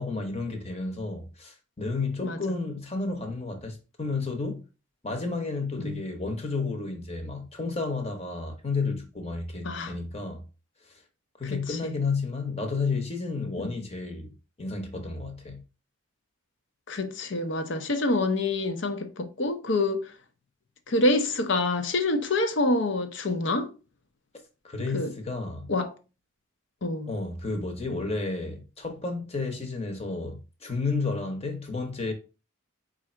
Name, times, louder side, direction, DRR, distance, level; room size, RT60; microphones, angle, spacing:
voice 1, 0.0-4.6 5.0-10.4 10.9-11.0 11.4-15.6 24.6-25.7 27.1-32.1, left 3 dB, 30° left, 0.9 m, -32 dB
voice 2, 11.4-12.0 13.6-13.7 16.9-20.0 20.9-23.7 24.9-25.1 25.7-25.9 26.8-27.1, left 2 dB, 60° left, 0.7 m, -27 dB
4.7 x 2.5 x 4.3 m
head